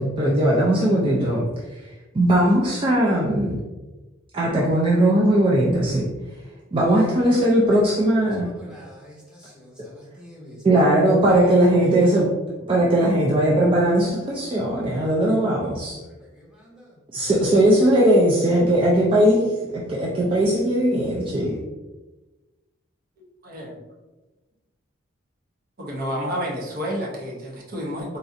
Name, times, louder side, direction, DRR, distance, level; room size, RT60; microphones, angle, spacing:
voice 1, 0.0-1.5 2.1-3.6 4.3-6.1 6.7-8.5 10.6-12.3 12.7-16.0 17.1-19.5 19.7-21.6, right 1 dB, 25° right, -4 dB, 0.4 m, -19 dB
voice 2, 8.2-11.1 12.1-12.2 15.8-17.3, equal, 5° right, -5 dB, 0.9 m, -47 dB
voice 3, 23.2-23.8 25.8-28.2, equal, 50° right, -2 dB, 0.8 m, -30 dB
4.0 x 2.6 x 2.4 m, 1.1 s
head